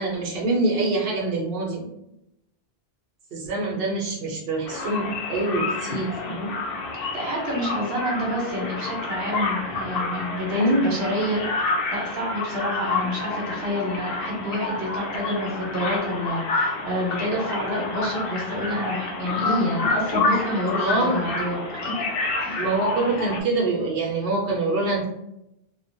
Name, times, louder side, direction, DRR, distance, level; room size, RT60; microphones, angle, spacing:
voice 1, 0.0-1.9 3.3-6.5 10.5-10.9 20.8-21.2 22.5-25.1, right 2 dB, 65° right, -2 dB, 0.9 m, -25 dB
sound 1, 4.6-23.4, left 3 dB, 65° left, 0.7 m, -29 dB
voice 2, 7.0-11.4 11.9-21.9 22.4-22.6, equal, 85° right, -2 dB, 1.1 m, -28 dB
2.4 x 2.2 x 2.6 m, 0.82 s
omnidirectional pair, 1.1 m